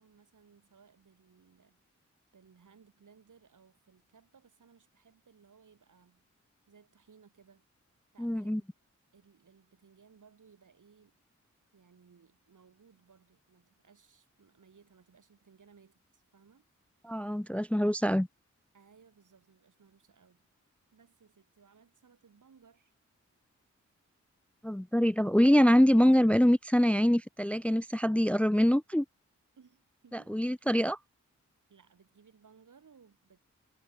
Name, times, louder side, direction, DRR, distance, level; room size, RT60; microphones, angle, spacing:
voice 1, 0.0-1.8 2.3-6.2 6.7-7.7 8.1-8.7 9.1-11.2 11.7-16.7 18.7-20.5 20.9-22.9 29.6-30.6 31.7-33.4, right 6 dB, 80° right, 6.7 m, -62 dB
voice 2, 8.2-8.6 17.0-18.3 24.6-29.1 30.3-31.0, equal, 5° left, 0.4 m, -24 dB
cardioid pair, 55°, 30 cm